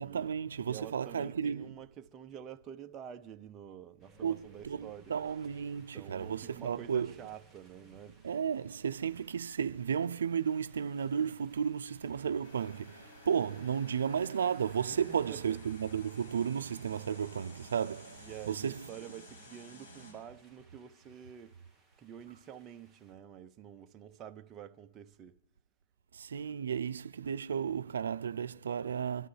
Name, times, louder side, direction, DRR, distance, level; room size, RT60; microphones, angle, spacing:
voice 1, 0.0-1.8 4.2-7.1 8.2-18.9 26.1-29.3, right 7 dB, 85° right, 0.4 m, -33 dB
voice 2, 0.6-5.1 5.7-8.2 8.5-8.6 14.9-15.6 18.2-21.6 22.0-25.4, right 9 dB, 20° right, 0.6 m, -48 dB
sound 1, 4.0-23.1, right 3 dB, ahead, 1.6 m, -64 dB
sound 2, 12.4-20.1, left 2 dB, 55° left, 7.6 m, -54 dB
25.5 x 12.5 x 3.3 m
hypercardioid pair, 150°, 0 cm